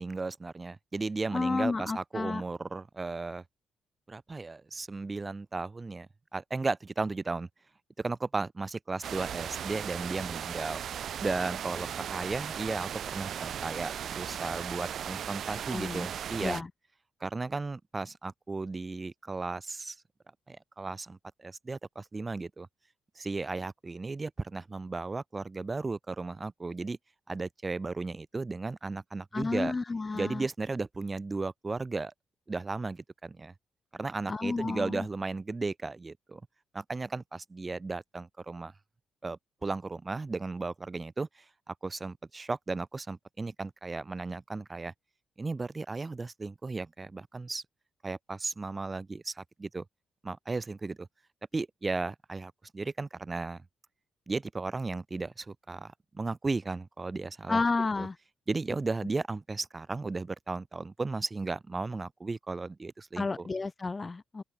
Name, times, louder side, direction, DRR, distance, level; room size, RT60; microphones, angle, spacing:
voice 1, 0.0-3.4 4.1-7.5 8.0-10.8 11.2-16.6 17.2-20.0 20.5-22.7 23.1-27.0 27.3-29.7 30.1-32.1 32.5-33.5 33.9-36.4 36.7-38.7 39.2-44.9 45.4-47.6 48.0-49.8 50.2-51.1 51.5-53.6 54.3-57.6 58.0-58.1 58.5-63.5, right 3 dB, 20° right, 1.3 m, -35 dB
voice 2, 1.3-2.4 15.7-16.1 16.4-16.7 29.3-30.4 34.3-35.0 57.5-58.1 63.2-64.4, left 3 dB, 25° left, 0.6 m, -31 dB
sound 1, 9.0-16.6, right 9 dB, 60° right, 0.5 m, -37 dB
open air
cardioid pair, 115°, 0 cm